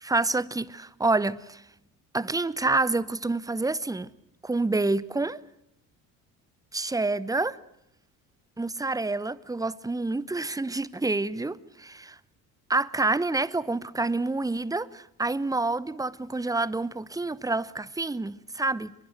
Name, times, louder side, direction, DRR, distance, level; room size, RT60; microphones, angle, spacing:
voice 1, 0.0-1.6 2.1-4.1 4.4-5.4 6.7-7.6 8.6-12.2 12.7-18.9, right 3 dB, 10° right, 0.9 m, -28 dB
24.5 x 21.5 x 8.0 m
hypercardioid pair, 55°, 46 cm